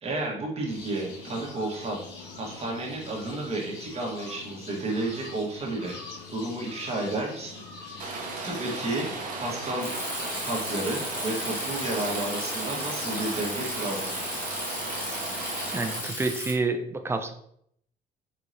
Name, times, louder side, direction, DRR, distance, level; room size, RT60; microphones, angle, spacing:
voice 1, 0.0-2.0 2.4-6.0 6.3-9.1 9.4-9.9 10.4-14.1, right 2 dB, 35° right, -2 dB, 1.2 m, -32 dB
sound 1, 0.7-16.3, left 3 dB, 90° left, 1.2 m, -43 dB
Rain, 8.0-16.0, right 3 dB, 55° right, 0.6 m, -36 dB
Bicycle, 9.8-16.5, left 1 dB, 10° left, 1.4 m, -35 dB
voice 2, 15.7-17.3, right 3 dB, 15° right, 7 dB, 0.4 m, -28 dB
4.2 x 2.8 x 2.5 m, 0.69 s
cardioid pair, 110°, 17 cm